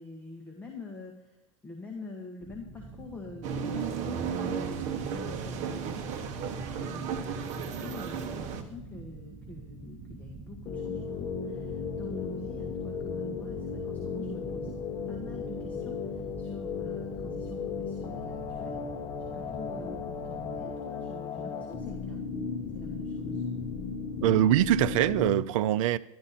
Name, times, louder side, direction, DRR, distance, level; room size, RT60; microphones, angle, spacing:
voice 1, 0.0-14.7 15.1-18.8 19.3-22.2 22.7-23.4, left 3 dB, 10° left, 1.6 m, -46 dB
sound 1, 2.4-20.7, right 3 dB, 20° right, 2.0 m, -46 dB
sound 2, 3.4-8.6, right 6 dB, 45° right, 1.2 m, -34 dB
sound 3, 10.7-25.4, left 5 dB, 30° left, 1.1 m, -35 dB
voice 2, 24.2-26.0, right 13 dB, 75° right, 0.5 m, -23 dB
12.0 x 12.0 x 4.3 m
supercardioid pair, 140°, 17 cm